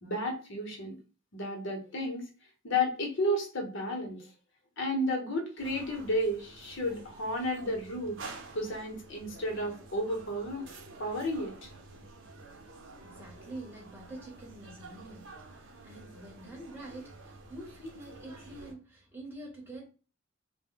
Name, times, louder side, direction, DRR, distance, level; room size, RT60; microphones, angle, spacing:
voice 1, 0.0-1.0 1.3-2.3 2.6-4.2 4.8-8.2 8.5-10.7 11.0-11.7, left 1 dB, 65° left, 0.9 m, -32 dB
sound 1, 5.6-18.7, right 3 dB, 85° right, 0.7 m, -50 dB
voice 2, 13.0-19.9, right 1 dB, 10° right, 1.0 m, -46 dB
2.1 x 2.1 x 3.7 m
head